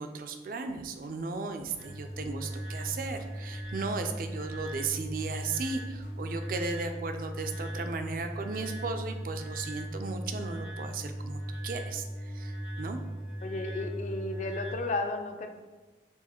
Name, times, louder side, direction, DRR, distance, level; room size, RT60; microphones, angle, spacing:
voice 1, 0.0-13.0, right 4 dB, 50° right, 7 dB, 0.4 m, -36 dB
sound 1, 0.7-6.3, equal, 65° left, 1.4 m, -58 dB
sound 2, 1.8-14.7, right 1 dB, 85° left, 1.0 m, -38 dB
voice 2, 13.4-15.5, left 2 dB, 40° left, 5 dB, 0.4 m, -33 dB
4.6 x 2.5 x 4.2 m, 1.3 s
head